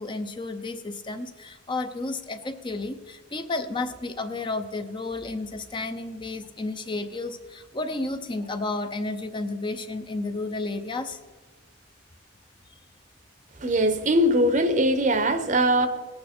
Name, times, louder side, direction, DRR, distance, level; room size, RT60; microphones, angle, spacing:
voice 1, 0.0-11.2, left 2 dB, 25° left, 8 dB, 0.6 m, -32 dB
voice 2, 13.6-15.9, right 1 dB, 40° right, 10 dB, 0.8 m, -21 dB
19.0 x 8.6 x 4.3 m, 1.4 s
head